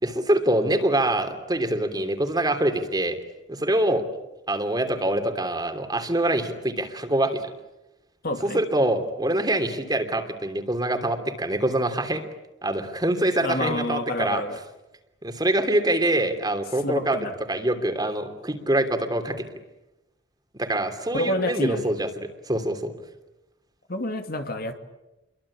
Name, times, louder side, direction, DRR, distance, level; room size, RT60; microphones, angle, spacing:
voice 1, 0.0-3.2 3.5-4.1 4.5-7.5 8.4-12.2 12.6-14.4 15.2-17.2 17.5-19.4 20.5-22.9, right 1 dB, 20° right, 7 dB, 3.1 m, -25 dB
voice 2, 8.2-8.6 13.4-14.6 16.8-17.3 21.1-21.9 23.9-24.8, left 1 dB, 55° left, 6 dB, 2.6 m, -28 dB
28.5 x 23.5 x 8.7 m, 0.97 s
head